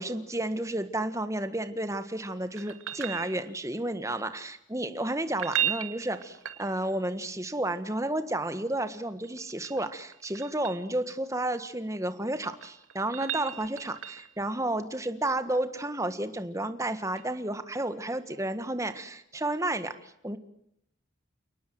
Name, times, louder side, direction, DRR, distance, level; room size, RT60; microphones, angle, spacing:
voice 1, 0.0-20.4, right 1 dB, 15° right, 10 dB, 1.5 m, -32 dB
sound 1, 2.6-3.8 5.3-7.1 9.2-10.9 12.3-14.4 17.1-17.2, right 10 dB, 90° right, 2.1 m, -35 dB
29.5 x 19.0 x 7.7 m, 0.75 s
head